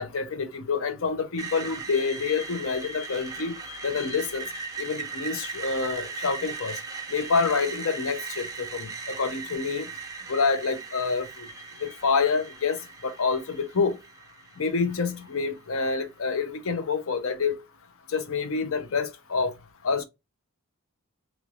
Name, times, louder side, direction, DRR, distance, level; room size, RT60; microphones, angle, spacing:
voice 1, 0.0-3.6 3.8-4.4 4.8-6.7 7.1-9.9 10.3-11.5 11.8-12.8 13.0-14.0 14.6-17.6 18.1-19.5 19.8-20.0, left 4 dB, 60° left, 0.5 m, -27 dB
Screech, 1.4-15.3, right 5 dB, 15° right, 0.5 m, -38 dB
3.1 x 3.0 x 2.3 m
head